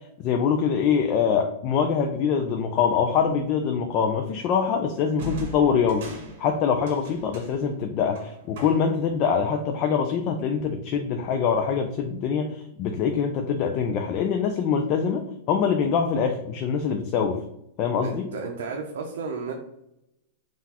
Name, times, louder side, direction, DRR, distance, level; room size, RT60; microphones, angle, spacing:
voice 1, 0.2-17.4 17.8-18.3, left 6 dB, 35° left, 5 dB, 0.4 m, -24 dB
sound 1, 3.1-3.4 5.2-9.1, right 1 dB, 60° right, 1.2 m, -40 dB
voice 2, 18.0-19.5, right 4 dB, 75° right, 2 dB, 0.6 m, -33 dB
3.9 x 2.4 x 4.2 m, 0.83 s
supercardioid pair, 160°, 0 cm